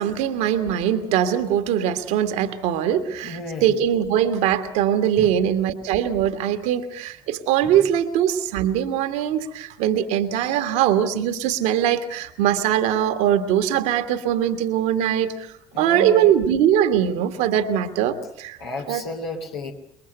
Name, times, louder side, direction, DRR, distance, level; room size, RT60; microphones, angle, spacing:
voice 1, 0.0-15.3 15.8-18.6 18.9-19.0, right 10 dB, 65° right, 8 dB, 1.6 m, -21 dB
voice 2, 3.2-3.7 5.2-5.4 7.6-7.8 15.7-16.3 18.6-19.7, left 2 dB, 80° left, 0 dB, 2.6 m, -32 dB
27.0 x 22.5 x 6.8 m, 0.71 s
figure-of-eight pair, 40°, 13 cm